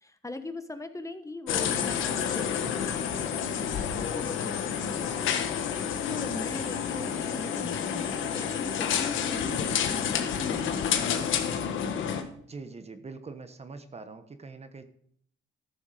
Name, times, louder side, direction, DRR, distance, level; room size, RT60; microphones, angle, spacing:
voice 1, 0.0-5.3 6.1-10.9, left 2 dB, 15° left, 8 dB, 1.1 m, -40 dB
sound 1, 1.5-12.2, left 8 dB, 80° left, 1.3 m, -29 dB
voice 2, 12.5-14.8, right 4 dB, 30° right, 9 dB, 1.1 m, -43 dB
13.5 x 7.0 x 4.9 m, 0.65 s
cardioid pair, 90°, 20 cm